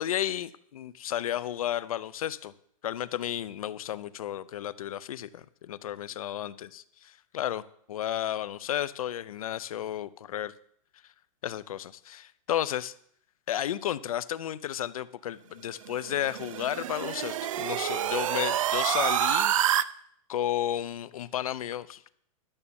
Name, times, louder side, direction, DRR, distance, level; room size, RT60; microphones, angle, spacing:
voice 1, 0.0-2.5 2.8-6.8 7.3-7.6 7.9-10.5 11.4-12.9 13.5-19.5 20.3-22.1, left 11 dB, 85° left, 17 dB, 0.7 m, -32 dB
sound 1, 15.9-19.8, right 11 dB, 70° right, 0.6 m, -28 dB
12.0 x 7.0 x 7.0 m, 0.65 s
supercardioid pair, 165°, 18 cm